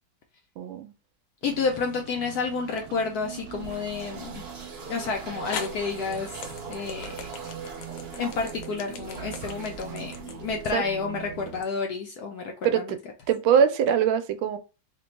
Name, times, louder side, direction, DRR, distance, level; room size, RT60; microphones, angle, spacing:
voice 1, 0.6-0.9 10.7-10.8 12.6-13.0 13.3-14.6, right 8 dB, 90° right, 1.4 m, -22 dB
sound 1, 1.4-2.0 2.8-2.9 4.8-4.9 5.5-11.7, left 7 dB, 90° left, 1.4 m, -40 dB
voice 2, 1.4-4.4 4.9-6.4 6.7-7.6 8.2-13.0, left 5 dB, 70° left, 0.9 m, -30 dB
sound 2, 1.4-11.6, right 9 dB, 70° right, 1.3 m, -41 dB
sound 3, 3.4-11.1, right 4 dB, 50° right, 0.7 m, -43 dB
3.3 x 2.2 x 3.9 m
omnidirectional pair, 2.1 m